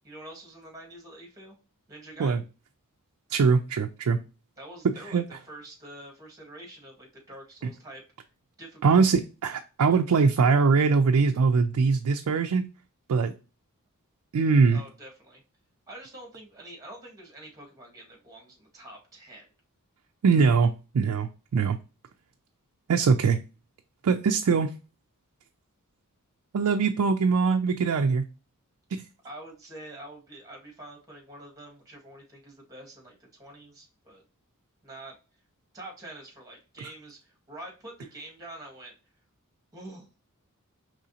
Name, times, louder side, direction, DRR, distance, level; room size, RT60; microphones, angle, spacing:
voice 1, 0.0-1.6 1.9-2.4 4.6-8.0 8.6-9.0 14.7-15.4 15.9-19.4 29.2-34.2 34.8-35.2 35.7-38.9 39.7-40.1, right 1 dB, 15° right, -1 dB, 1.7 m, -46 dB
voice 2, 3.3-4.2 5.1-5.2 8.8-12.6 13.1-13.3 14.3-14.8 20.2-21.8 22.9-23.4 24.0-24.7 26.5-28.2 28.9-29.0, right 5 dB, 85° right, 5 dB, 0.4 m, -22 dB
5.0 x 3.1 x 2.7 m, 0.32 s
head